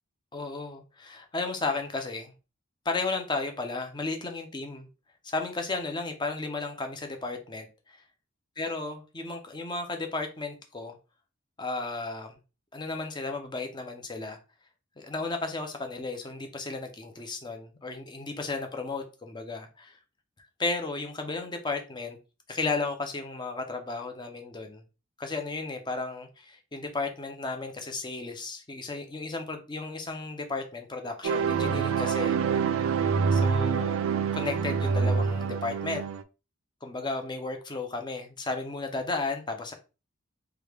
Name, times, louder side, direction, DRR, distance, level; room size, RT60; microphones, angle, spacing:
voice 1, 0.3-2.3 2.8-4.8 5.2-8.0 8.6-11.0 11.6-12.4 12.7-14.4 15.0-20.0 20.6-22.2 22.5-24.8 25.2-32.4 33.3-34.0 34.3-36.0 36.8-39.7, left 3 dB, 20° left, 0.6 m, -34 dB
sound 1, 31.2-36.2, right 6 dB, 85° right, 0.3 m, -26 dB
3.2 x 2.3 x 3.3 m
head